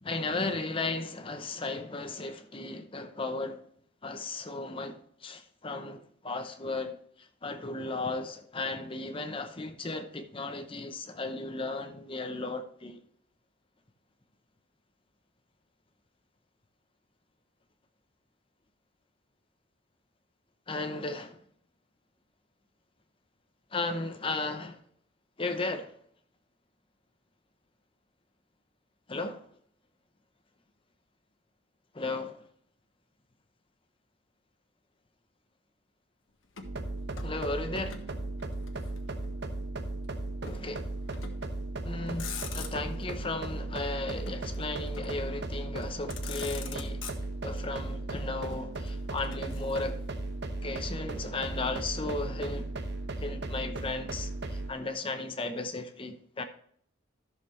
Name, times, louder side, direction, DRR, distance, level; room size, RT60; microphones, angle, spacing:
voice 1, 0.0-3.6 4.0-13.0 20.7-21.4 23.7-24.8 25.4-25.9 29.1-29.5 31.9-32.4 37.2-38.0 40.4-40.9 41.8-47.0 47.4-50.0 50.6-52.7 53.2-56.4, left 3 dB, 25° left, 0.8 m, -35 dB
Motor vehicle (road), 36.5-38.1 38.4-39.5 40.5-40.7 41.1-41.6 42.0-43.1 44.2-45.3 45.8-45.9 46.1-47.6 48.5-50.1, left 7 dB, 80° left, 1.2 m, -45 dB
sound 1, 36.6-54.7, right 2 dB, 55° right, 1.0 m, -36 dB
14.0 x 6.6 x 3.2 m
head